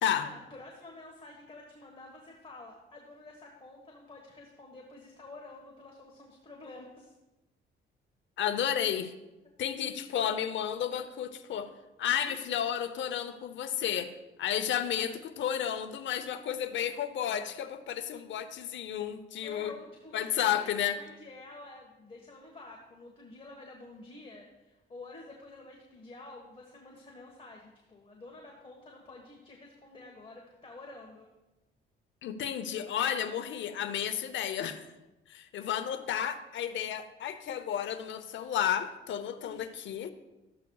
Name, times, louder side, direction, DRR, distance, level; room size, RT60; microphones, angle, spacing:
voice 1, 0.0-7.1 19.4-31.3 39.4-39.7, left 2 dB, 30° left, 0 dB, 1.3 m, -49 dB
voice 2, 8.4-9.1 9.6-11.7 12.0-14.1 14.4-19.7 20.1-21.0 32.2-34.9 35.3-40.1, left 9 dB, 70° left, 9 dB, 0.7 m, -32 dB
13.0 x 8.2 x 2.3 m, 1.0 s
cardioid pair, 90°, 20 cm